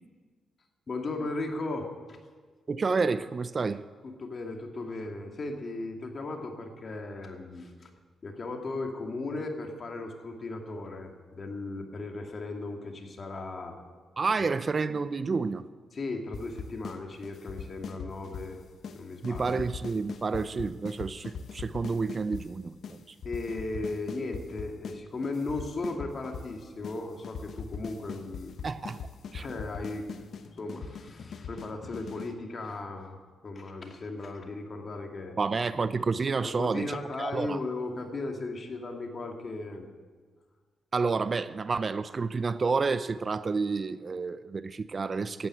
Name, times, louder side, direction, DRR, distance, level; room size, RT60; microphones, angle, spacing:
voice 1, 0.9-2.2 4.0-7.9 8.2-13.8 15.9-18.6 18.9-19.6 23.2-28.6 29.4-30.1 30.6-33.2 33.4-35.4 36.4-39.9, left 2 dB, 45° left, 2.5 m, -36 dB
voice 2, 2.7-3.9 14.2-15.7 19.2-23.1 28.6-29.0 29.3-29.5 35.4-37.6 40.9-45.5, right 4 dB, 40° right, 0.6 m, -30 dB
sound 1, 16.3-17.0 17.2-18.5 18.8-19.0 19.2-22.5 22.8-23.0 23.2-25.0 25.2-26.5 26.8-27.0 27.2-32.3, left 6 dB, 65° left, 1.1 m, -40 dB
14.0 x 9.5 x 9.2 m
cardioid pair, 70°, 0 cm